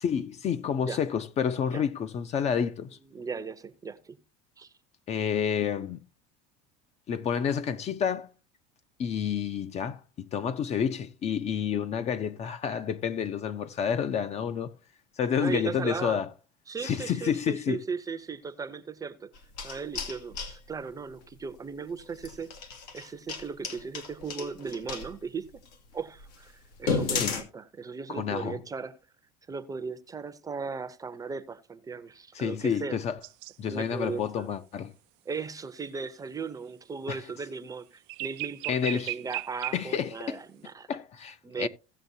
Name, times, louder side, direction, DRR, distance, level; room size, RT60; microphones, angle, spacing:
voice 1, 0.0-3.0 5.1-6.0 7.1-8.3 9.0-14.7 15.2-16.3 16.8-17.8 27.1-27.4 28.1-28.6 32.3-33.2 33.6-34.9 37.1-37.2 38.7-39.1 39.7-40.4 40.9-41.7, left 7 dB, 30° left, 0.6 m, -29 dB
voice 2, 3.1-4.2 4.6-4.7 15.3-16.2 16.7-19.3 19.6-22.5 22.9-25.6 25.9-26.5 26.8-28.9 29.5-33.0 33.7-34.5 35.3-40.9 41.4-41.7, right 5 dB, 15° right, 0.7 m, -37 dB
sound 1, 19.4-20.6 22.1-25.1 25.7-25.8 26.2-26.3 26.7-27.4, left 5 dB, 90° left, 2.3 m, -32 dB
sound 2, 33.2-33.5 38.1-39.9, right 21 dB, 60° right, 0.4 m, -36 dB
16.5 x 7.2 x 2.7 m
supercardioid pair, 135°, 21 cm